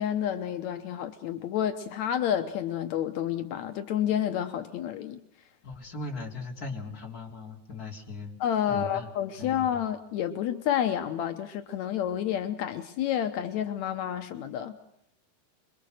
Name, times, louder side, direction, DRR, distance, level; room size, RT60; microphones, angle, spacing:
voice 1, 0.0-5.2 8.4-14.8, left 10 dB, 75° left, 9 dB, 1.6 m, -29 dB
voice 2, 5.6-8.4 8.7-9.1 9.4-9.8, left 3 dB, 25° left, 3 dB, 3.7 m, -38 dB
27.0 x 23.0 x 6.5 m, 0.81 s
omnidirectional pair, 4.7 m